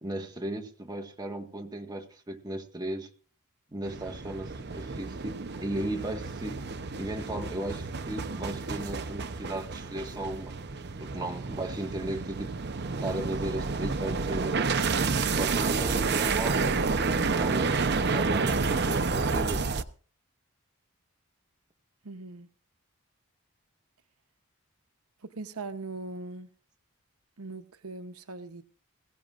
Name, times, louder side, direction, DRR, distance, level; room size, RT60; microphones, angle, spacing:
voice 1, 0.0-3.1 3.7-5.3 5.6-6.6 7.0-10.6 11.0-12.5 13.0-14.6 15.4-19.7, right 1 dB, 20° right, 1.5 m, -36 dB
sound 1, 3.8-19.8, right 4 dB, 50° right, 0.7 m, -30 dB
voice 2, 22.0-22.5 25.2-26.5 27.4-28.6, right 3 dB, 80° right, 0.9 m, -40 dB
20.5 x 16.5 x 2.5 m
head